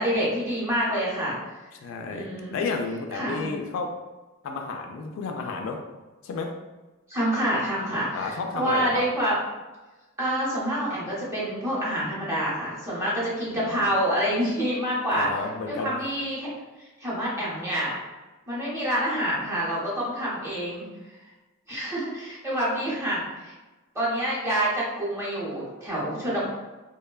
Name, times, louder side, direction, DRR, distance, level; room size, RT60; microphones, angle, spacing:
voice 1, 0.0-1.4 2.1-2.6 3.1-3.4 7.1-9.4 10.2-15.3 15.7-16.5 16.8-17.9 18.5-20.8 21.7-23.5 23.9-26.5, equal, 15° right, -7 dB, 0.8 m, -27 dB
voice 2, 1.7-3.9 4.4-5.8 6.2-6.5 8.1-9.1 13.5-13.9 15.1-16.0, left 4 dB, 65° left, 3 dB, 0.3 m, -31 dB
3.0 x 2.1 x 2.3 m, 1.2 s
head